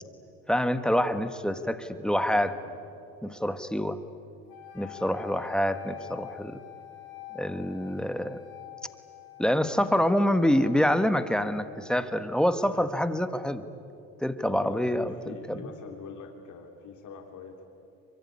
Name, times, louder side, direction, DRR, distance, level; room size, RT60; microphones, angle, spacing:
voice 1, 0.5-2.5 3.2-4.0 4.7-6.6 7.3-8.4 9.4-13.6 14.2-15.7, equal, ahead, 10 dB, 1.4 m, -26 dB
voice 2, 2.2-2.8 12.7-12.9 14.5-17.6, left 5 dB, 60° left, 3 dB, 3.3 m, -45 dB
sound 1, 4.5-12.6, left 17 dB, 85° left, 3.4 m, -47 dB
23.5 x 23.5 x 9.8 m, 2.7 s
supercardioid pair, 90°, 34 cm